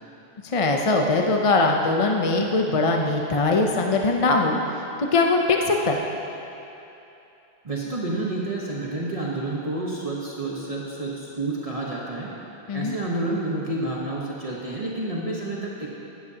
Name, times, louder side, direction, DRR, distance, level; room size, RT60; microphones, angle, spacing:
voice 1, 0.4-4.6 5.0-6.0 12.7-13.0, left 3 dB, 40° left, 2 dB, 0.6 m, -21 dB
voice 2, 7.6-12.3 12.7-15.9, right 2 dB, 35° right, -4 dB, 1.1 m, -29 dB
15.5 x 12.0 x 2.8 m, 2.9 s
omnidirectional pair, 1.1 m